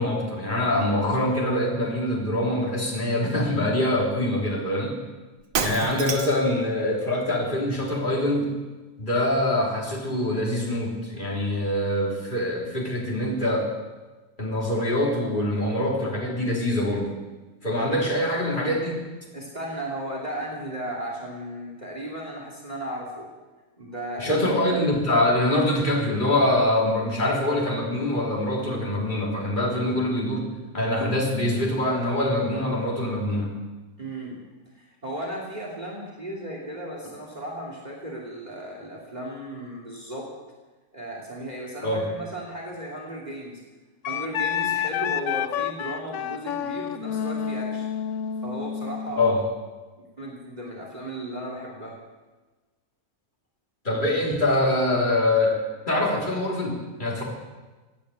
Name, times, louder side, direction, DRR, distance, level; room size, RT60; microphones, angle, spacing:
voice 1, 0.0-5.0 5.6-8.5 9.0-13.7 14.4-17.1 17.6-19.0 24.2-30.5 30.7-33.6 41.8-42.0 49.2-49.4 53.9-55.6 55.9-57.2, left 1 dB, 30° left, -2 dB, 3.5 m, -24 dB
Shatter, 5.4-6.5, right 5 dB, 65° right, 1.6 m, -28 dB
voice 2, 19.3-23.3 23.8-24.8 34.0-34.4 34.7-40.3 40.9-43.6 44.1-47.9 48.4-49.4 50.0-52.0, right 1 dB, 30° right, -1 dB, 2.9 m, -35 dB
Wind instrument woodwind instrument, 44.0-49.4, left 9 dB, 65° left, 0.9 m, -29 dB
16.5 x 9.5 x 8.4 m, 1.2 s
omnidirectional pair, 1.5 m